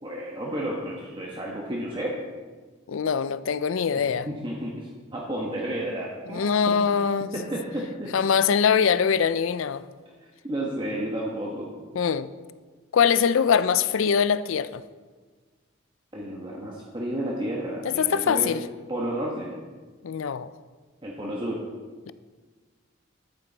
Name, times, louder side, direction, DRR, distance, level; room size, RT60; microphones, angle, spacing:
voice 1, 0.0-2.2 3.9-6.8 7.3-8.1 10.4-11.7 16.1-18.5 18.9-19.5 21.0-21.6, right 1 dB, 25° right, 1.2 m, -32 dB
voice 2, 2.9-4.3 6.3-7.3 8.1-9.8 11.9-12.3 12.9-14.8 17.8-18.7 20.0-20.5, left 7 dB, 80° left, 0.4 m, -23 dB
10.5 x 9.1 x 4.0 m
head